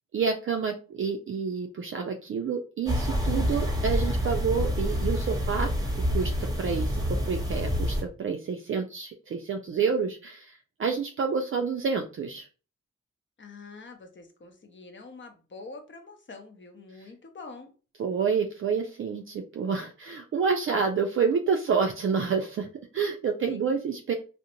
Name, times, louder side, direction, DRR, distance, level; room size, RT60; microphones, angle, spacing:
voice 1, 0.1-5.7 6.1-12.5 18.0-22.7 22.9-24.1, right 5 dB, 45° right, 4 dB, 0.4 m, -28 dB
sound 1, 2.9-8.0, equal, 10° right, 0.9 m, -27 dB
voice 2, 13.4-17.7 23.5-23.6 24.1-24.2, left 3 dB, 40° left, 5 dB, 0.8 m, -45 dB
2.5 x 2.1 x 2.8 m, 0.36 s
supercardioid pair, 45°, 29 cm